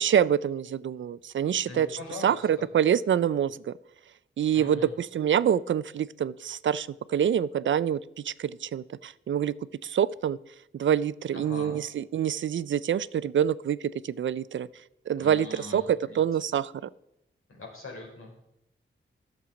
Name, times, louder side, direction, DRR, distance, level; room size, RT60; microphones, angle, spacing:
voice 1, 0.0-3.7 4.4-8.0 8.2-9.5 9.8-10.4 10.7-13.8 14.0-14.7 15.1-16.9, right 9 dB, 65° right, 18 dB, 0.4 m, -26 dB
voice 2, 1.6-2.7 4.5-4.9 11.3-11.8 15.2-16.2 17.5-18.4, left 3 dB, 85° left, -1 dB, 4.0 m, -42 dB
12.5 x 7.2 x 5.0 m, 0.83 s
wide cardioid pair, 135°, 21 cm